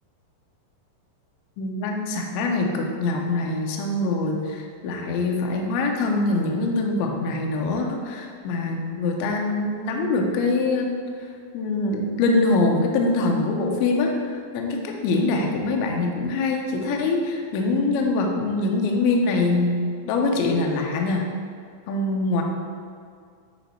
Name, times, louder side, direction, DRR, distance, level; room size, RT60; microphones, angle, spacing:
voice 1, 1.6-10.9 11.5-19.8 20.1-21.3 21.9-22.4, left 3 dB, 80° left, 1 dB, 2.4 m, -24 dB
9.1 x 3.1 x 4.2 m, 2.2 s
omnidirectional pair, 4.9 m